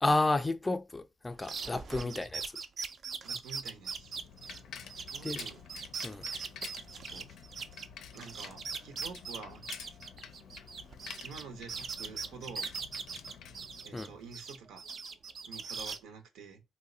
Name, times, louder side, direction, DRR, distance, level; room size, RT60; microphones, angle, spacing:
voice 1, 0.0-2.4 5.2-5.4 6.0-6.2 13.9-14.1, left 2 dB, 15° left, 0.3 m, -31 dB
sound 1, 1.4-7.9 8.1-11.4 11.7-14.1 14.3-16.0, right 5 dB, 50° right, 0.4 m, -40 dB
voice 2, 3.2-4.2 5.0-5.6 7.1-7.3 8.1-9.7 11.2-12.7 13.8-14.8 15.5-16.6, right 5 dB, 90° right, 0.7 m, -48 dB
Bicycle, 3.5-14.4, left 7 dB, 80° left, 0.4 m, -49 dB
2.8 x 2.1 x 3.7 m
cardioid pair, 90°, 0 cm